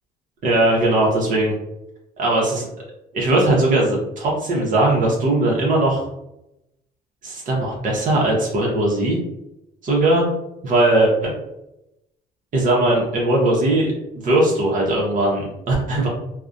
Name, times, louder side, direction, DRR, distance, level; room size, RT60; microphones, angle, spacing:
voice 1, 0.4-1.5 2.2-2.6 3.1-6.0 7.2-9.2 9.8-10.3 10.6-11.3 12.5-13.9 14.2-16.1, right 1 dB, 50° right, -3 dB, 0.7 m, -19 dB
2.3 x 2.1 x 2.5 m, 0.88 s
cardioid pair, 110°, 17 cm